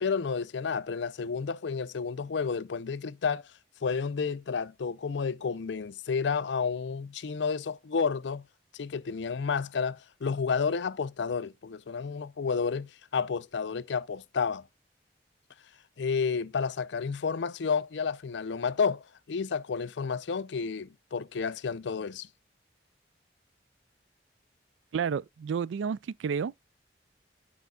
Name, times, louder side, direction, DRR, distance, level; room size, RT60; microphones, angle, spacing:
voice 1, 0.0-3.5 3.8-8.5 8.7-14.7 16.0-22.3, left 5 dB, 75° left, 0.5 m, -31 dB
voice 2, 24.9-26.6, right 6 dB, 85° right, 0.3 m, -31 dB
13.5 x 4.5 x 2.3 m
head